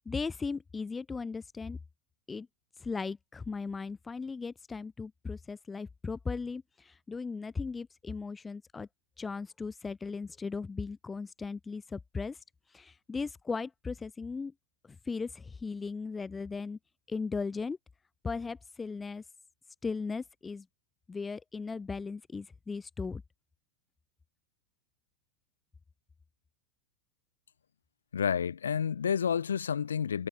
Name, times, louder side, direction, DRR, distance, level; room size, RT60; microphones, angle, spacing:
voice 1, 0.1-1.8 2.3-2.5 2.8-8.9 9.2-12.4 12.7-14.5 15.1-16.8 17.1-17.8 18.2-19.2 19.8-20.6 21.1-23.2, left 4 dB, 15° left, 2.7 m, -37 dB
voice 2, 28.1-30.3, left 7 dB, 70° left, 6.5 m, -30 dB
figure-of-eight pair, 90°, 0 cm